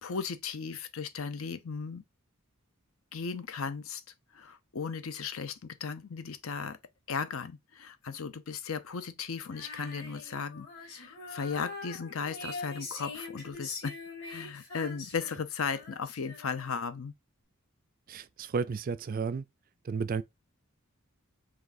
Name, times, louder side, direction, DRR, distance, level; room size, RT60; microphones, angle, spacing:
voice 1, 0.0-2.0 3.1-4.0 4.3-6.8 7.1-17.1, left 5 dB, 70° left, 0.6 m, -36 dB
Female singing, 9.5-16.9, left 3 dB, 50° left, 2.7 m, -43 dB
voice 2, 18.1-19.5 19.8-20.2, right 5 dB, 40° right, 0.3 m, -32 dB
5.1 x 3.3 x 2.6 m
head